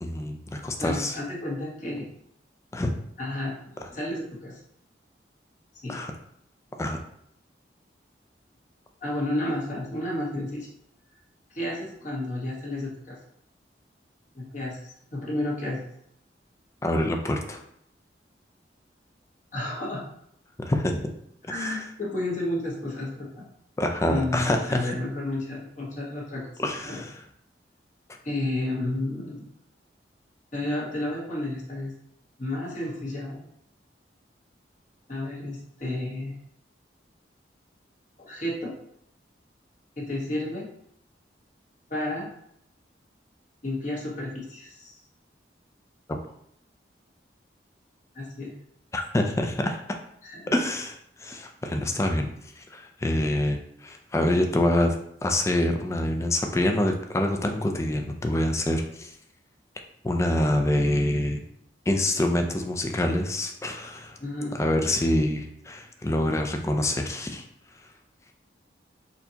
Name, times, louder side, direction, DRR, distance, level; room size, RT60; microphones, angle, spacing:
voice 1, 0.0-1.2 2.7-2.9 5.9-6.1 6.8-7.0 16.8-17.6 20.6-21.1 21.6-21.8 23.8-24.9 26.6-27.2 46.1-46.2 48.9-49.8 50.5-52.3 52.6-55.0 55.2-59.1 60.0-61.4 61.9-64.2 64.5-67.4, left 1 dB, 15° left, 4 dB, 0.4 m, -26 dB
voice 2, 0.8-2.1 3.2-4.6 5.8-6.0 9.0-10.7 11.5-13.2 14.3-15.8 19.5-20.0 21.5-23.4 24.1-26.4 26.9-27.0 28.2-29.4 30.5-31.9 32.4-33.4 35.1-36.4 38.2-38.7 40.0-40.7 41.9-42.3 43.6-45.0 48.1-48.5 50.2-50.5 64.2-64.6, left 1 dB, 45° left, -5 dB, 1.2 m, -31 dB
4.2 x 2.8 x 2.8 m, 0.71 s
head